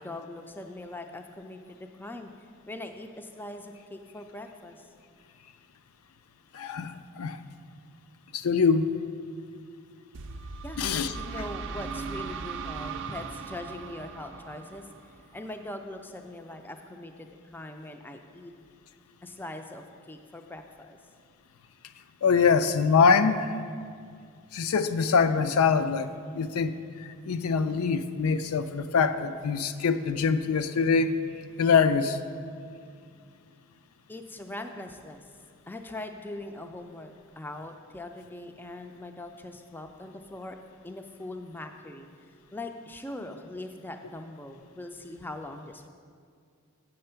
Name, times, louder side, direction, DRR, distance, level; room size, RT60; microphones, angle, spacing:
voice 1, 0.0-2.3 2.7-4.9 10.6-10.8 11.1-14.9 15.3-18.5 19.2-21.0 34.1-35.3 35.7-40.6 40.8-42.1 42.5-45.9, left 1 dB, 10° left, 5 dB, 0.3 m, -41 dB
voice 2, 6.5-7.4 8.3-8.9 10.8-11.1 22.2-23.5 24.5-26.1 26.3-31.2 31.6-32.2, left 5 dB, 75° left, 10 dB, 0.4 m, -24 dB
sound 1, 10.1-15.8, right 5 dB, 55° right, 0.4 m, -39 dB
7.7 x 7.3 x 5.6 m, 2.2 s
head